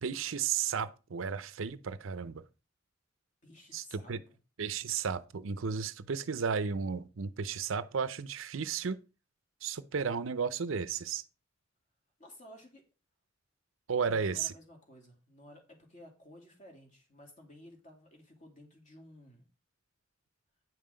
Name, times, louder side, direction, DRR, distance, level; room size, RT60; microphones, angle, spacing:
voice 1, 0.0-2.4 3.7-4.2 4.6-9.0 9.6-11.2 13.9-14.5, right 6 dB, 75° right, 0.6 m, -33 dB
voice 2, 3.4-4.4 12.2-12.8 14.0-19.4, left 1 dB, 40° left, 2.7 m, -54 dB
9.4 x 5.6 x 5.1 m
head